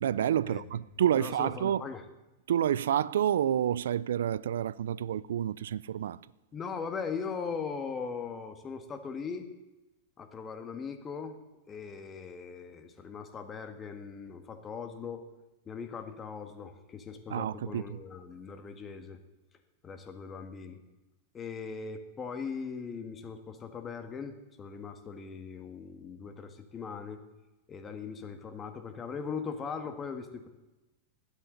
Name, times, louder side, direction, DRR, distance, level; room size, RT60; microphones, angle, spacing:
voice 1, 0.0-1.8 2.5-6.2 17.3-18.0, right 10 dB, 80° right, 0.4 m, -29 dB
voice 2, 1.1-2.0 6.5-9.5 10.2-11.4 11.7-15.2 15.6-19.2 19.8-20.8 21.3-27.2 27.7-30.5, left 5 dB, 25° left, 1.5 m, -39 dB
21.0 x 8.2 x 3.9 m
hypercardioid pair, 115°, 0 cm